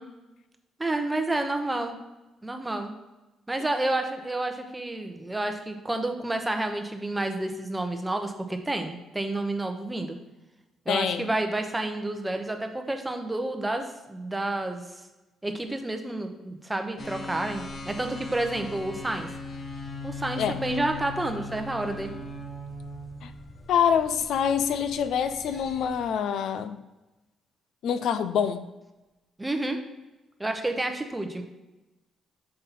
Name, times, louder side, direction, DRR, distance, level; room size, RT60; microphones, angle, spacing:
voice 1, 0.8-2.0 2.4-2.9 3.5-10.2 10.9-15.0 15.4-19.3 20.0-22.1 29.4-29.8 30.4-31.4, right 2 dB, 15° right, 5 dB, 0.9 m, -30 dB
voice 2, 10.9-11.3 20.4-20.6 23.2-23.3 23.7-26.8 27.8-28.6, left 8 dB, 75° left, 10 dB, 0.4 m, -25 dB
sound 1, 17.0-26.0, left 2 dB, 40° left, 1.0 m, -40 dB
5.5 x 5.5 x 4.2 m, 1.0 s
cardioid pair, 90°, 0 cm